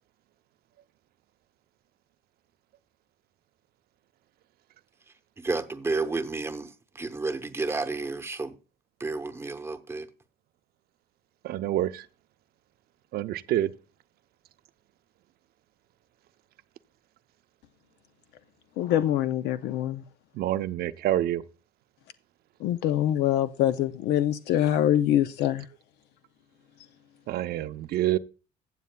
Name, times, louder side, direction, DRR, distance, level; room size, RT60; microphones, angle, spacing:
voice 1, 5.4-8.6 9.0-10.1, right 3 dB, 15° right, 0.8 m, -31 dB
voice 2, 11.4-12.1 13.1-13.7 20.3-21.4 27.3-28.2, right 13 dB, 65° right, 0.6 m, -27 dB
voice 3, 18.8-20.0 22.6-25.7, left 11 dB, 80° left, 0.5 m, -24 dB
15.0 x 8.2 x 2.2 m
cardioid pair, 110°, 17 cm